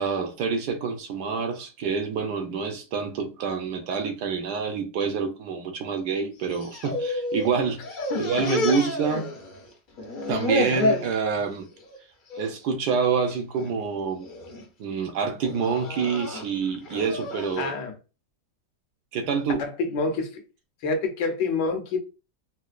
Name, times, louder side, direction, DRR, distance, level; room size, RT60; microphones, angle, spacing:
voice 1, 0.0-9.4 10.3-11.7 12.4-14.3 14.8-17.7 19.1-19.7, right 5 dB, 75° right, 1.2 m, -27 dB
sound 1, 6.4-7.5 7.8-9.7 10.0-11.1 11.6-12.0 12.3-12.5 13.3-13.7 14.2-14.6 15.4-17.6, left 2 dB, 55° left, 0.5 m, -29 dB
voice 2, 17.6-17.9 19.6-20.4 20.8-22.0, left 4 dB, 75° left, 1.4 m, -27 dB
4.2 x 2.2 x 2.4 m
omnidirectional pair, 1.9 m